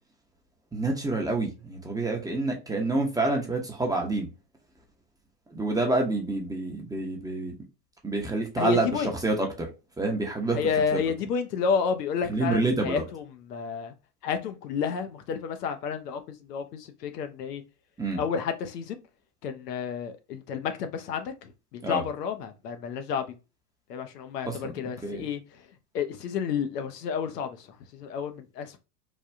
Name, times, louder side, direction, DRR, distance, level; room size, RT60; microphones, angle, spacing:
voice 1, 0.7-4.3 5.5-7.5 8.0-9.7 10.0-10.6 10.9-11.0 12.3-13.0 18.0-18.2 21.8-22.0 24.4-25.3, right 2 dB, 10° right, 0.6 m, -28 dB
voice 2, 8.6-9.1 10.5-13.2 13.5-13.9 14.2-17.6 18.2-19.0 19.4-23.3 23.9-25.4 25.9-27.7 27.9-28.8, left 6 dB, 75° left, 0.7 m, -30 dB
3.3 x 2.2 x 2.5 m
hypercardioid pair, 95°, 48 cm